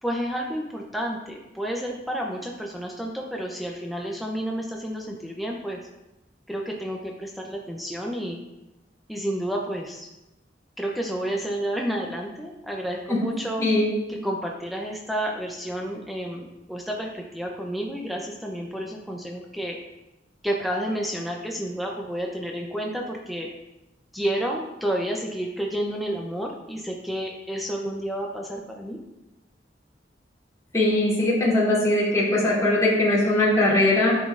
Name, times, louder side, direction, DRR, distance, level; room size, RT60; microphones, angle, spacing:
voice 1, 0.0-5.8 6.5-8.4 9.1-10.1 10.8-13.6 14.2-19.8 20.4-23.5 24.1-29.0, right 1 dB, ahead, -1 dB, 0.6 m, -30 dB
voice 2, 13.6-13.9 30.7-34.1, left 1 dB, 20° left, -8 dB, 2.8 m, -20 dB
10.5 x 6.0 x 2.5 m, 0.96 s
head